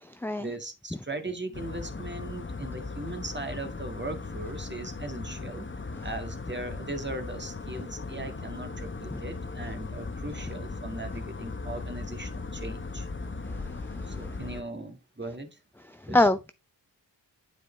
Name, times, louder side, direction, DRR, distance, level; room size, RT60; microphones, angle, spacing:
voice 1, 0.4-5.7 6.0-13.1 14.0-15.6 16.1-16.3, right 2 dB, 25° right, 1.9 m, -38 dB
sound 1, 1.5-14.6, left 3 dB, 30° left, 0.9 m, -38 dB
voice 2, 16.0-16.5, left 2 dB, 5° left, 0.5 m, -23 dB
9.3 x 4.9 x 3.3 m
cardioid pair, 50°, 41 cm